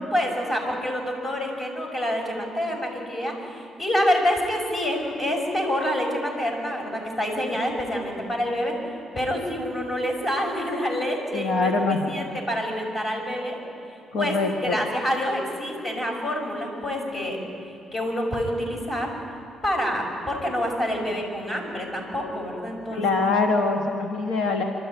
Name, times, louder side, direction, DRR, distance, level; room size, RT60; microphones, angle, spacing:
voice 1, 0.1-8.7 9.1-13.6 14.2-14.4 14.6-17.4 17.9-19.1 19.6-23.0, equal, 35° left, 1 dB, 5.7 m, -27 dB
voice 2, 11.3-12.3 14.1-14.8 22.9-24.6, left 3 dB, 80° left, 2 dB, 1.5 m, -24 dB
26.0 x 13.0 x 9.0 m, 2.8 s
cardioid pair, 90°, 0 cm